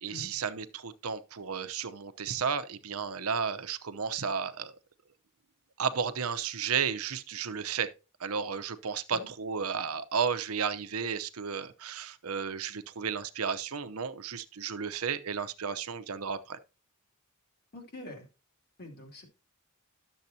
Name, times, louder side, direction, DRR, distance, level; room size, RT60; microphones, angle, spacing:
voice 1, 0.0-4.7 5.8-7.9 8.2-16.6, right 6 dB, 75° right, 0.8 m, -33 dB
voice 2, 17.7-18.3 18.8-19.2, left 2 dB, 45° left, 2.5 m, -45 dB
12.0 x 7.0 x 2.8 m
head